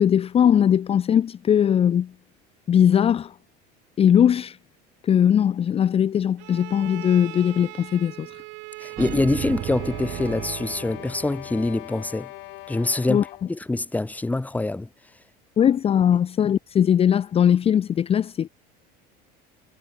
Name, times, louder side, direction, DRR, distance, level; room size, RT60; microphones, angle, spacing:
voice 1, 0.0-2.1 2.7-3.3 4.0-4.6 5.0-8.4 13.1-13.2 15.6-18.5, left 9 dB, 30° left, 0.9 m, -20 dB
Bowed string instrument, 6.4-11.0, right 27 dB, 65° right, 1.5 m, -40 dB
voice 2, 8.8-12.3 12.7-14.9, left 2 dB, 5° left, 1.6 m, -25 dB
sound 1, 9.0-11.9, right 16 dB, 45° right, 0.9 m, -35 dB
sound 2, 9.5-13.6, left 22 dB, 60° left, 1.6 m, -41 dB
cardioid pair, 130°, 20 cm